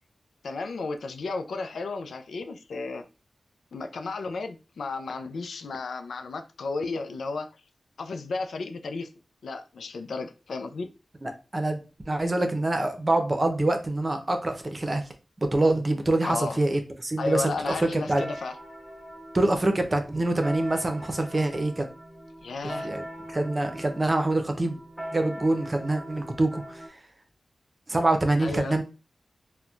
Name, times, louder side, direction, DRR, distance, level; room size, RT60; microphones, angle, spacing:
voice 1, 0.4-3.0 3.7-7.5 8.0-9.1 9.4-10.9 16.2-16.6 17.2-18.6 22.4-22.9 28.4-28.8, left 3 dB, 85° left, 0.3 m, -33 dB
voice 2, 11.2-11.8 12.1-15.0 15.4-17.5 17.8-18.2 19.3-21.9 22.8-23.0 23.3-24.8 25.1-26.8 27.9-28.8, right 2 dB, 35° right, 0.7 m, -25 dB
sound 1, 17.7-26.9, right 1 dB, 5° left, 1.4 m, -41 dB
4.1 x 2.2 x 2.4 m
cardioid pair, 45°, 0 cm